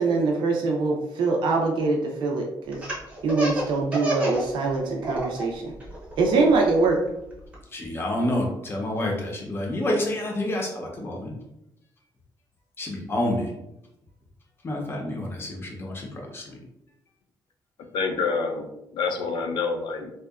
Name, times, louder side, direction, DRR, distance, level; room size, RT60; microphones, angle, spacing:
voice 1, 0.0-2.8 3.2-5.7 6.2-7.0, right 3 dB, 80° right, 1 dB, 0.4 m, -23 dB
Laughter, 2.7-4.5 4.8-5.4 5.8-7.5, right 1 dB, 15° right, 0.7 m, -29 dB
voice 2, 7.7-11.3 12.8-13.5 14.6-16.1 16.3-16.6, left 1 dB, 30° left, 0 dB, 0.5 m, -28 dB
voice 3, 17.9-20.1, left 4 dB, 85° left, 4 dB, 0.4 m, -27 dB
2.7 x 2.2 x 2.3 m, 0.86 s
wide cardioid pair, 165°, 8 cm